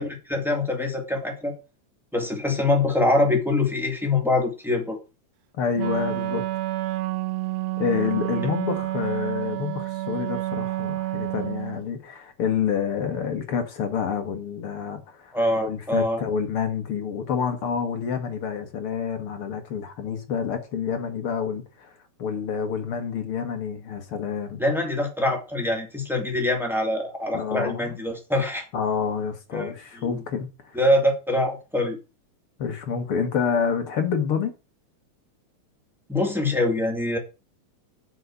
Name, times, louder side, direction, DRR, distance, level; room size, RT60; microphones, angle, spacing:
voice 1, 0.0-1.5 2.1-5.0 8.4-8.5 15.3-16.2 24.6-28.7 29.5-30.2 30.7-32.0 36.1-37.2, left 2 dB, ahead, 2.3 m, -24 dB
voice 2, 5.5-6.4 7.8-21.9 22.2-24.6 27.3-28.0 28.7-30.8 32.6-34.5, left 7 dB, 55° left, 2.0 m, -28 dB
Wind instrument woodwind instrument, 5.7-11.9, right 17 dB, 70° right, 1.7 m, -29 dB
7.5 x 6.5 x 8.0 m
omnidirectional pair, 3.5 m